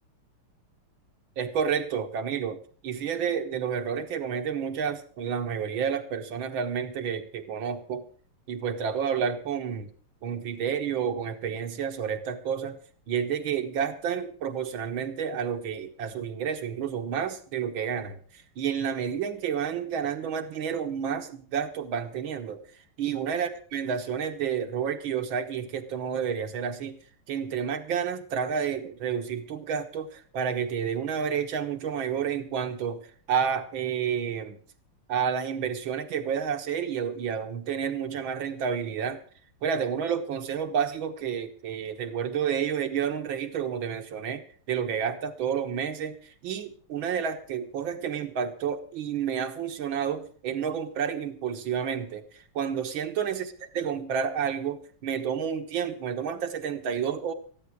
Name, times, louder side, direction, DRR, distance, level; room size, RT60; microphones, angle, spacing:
voice 1, 1.4-8.1 8.5-9.9 10.2-12.8 13.1-22.6 23.0-27.0 27.3-34.6 35.1-39.2 39.6-57.3, right 7 dB, 65° right, 8 dB, 2.0 m, -30 dB
14.0 x 11.5 x 5.9 m, 0.42 s
omnidirectional pair, 2.4 m